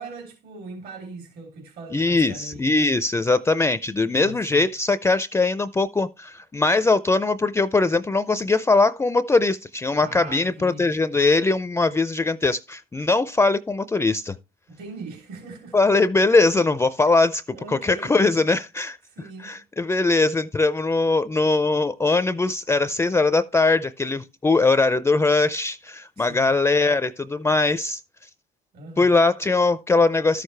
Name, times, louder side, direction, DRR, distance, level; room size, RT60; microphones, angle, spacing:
voice 1, 0.0-2.7 4.1-4.6 9.9-10.9 14.7-15.8 17.0-17.2 17.5-18.2 19.1-19.6 26.2-26.5 28.7-29.2, right 2 dB, 70° right, 3.2 m, -40 dB
voice 2, 1.9-14.3 15.7-17.4 17.7-19.0 19.4-28.0 29.0-30.4, left 3 dB, 15° left, 0.4 m, -21 dB
13.0 x 6.5 x 3.2 m
cardioid pair, 110°, 17 cm